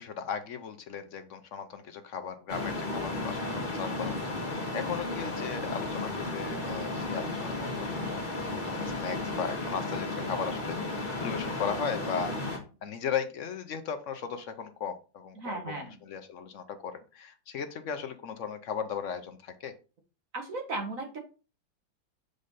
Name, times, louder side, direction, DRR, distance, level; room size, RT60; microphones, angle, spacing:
voice 1, 0.0-12.4 12.8-19.7, left 7 dB, 65° left, 9 dB, 0.8 m, -37 dB
sound 1, 2.5-12.6, left 2 dB, 25° left, 1.8 m, -34 dB
voice 2, 15.4-15.9 20.3-21.2, right 2 dB, 50° right, 3 dB, 1.5 m, -36 dB
6.5 x 5.1 x 4.0 m, 0.34 s
omnidirectional pair, 2.1 m